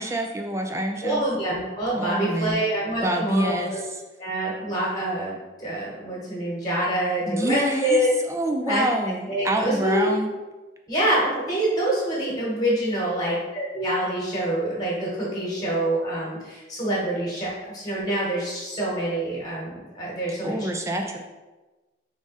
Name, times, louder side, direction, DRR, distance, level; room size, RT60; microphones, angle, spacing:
voice 1, 0.0-1.2 1.9-2.6 3.0-4.0 7.2-10.3 20.4-21.2, right 1 dB, 15° right, 3 dB, 0.4 m, -27 dB
voice 2, 1.0-3.8 4.2-8.1 8.7-8.8 9.3-10.1 10.9-20.7, right 1 dB, 20° left, -5 dB, 1.3 m, -26 dB
3.6 x 3.6 x 4.0 m, 1.2 s
head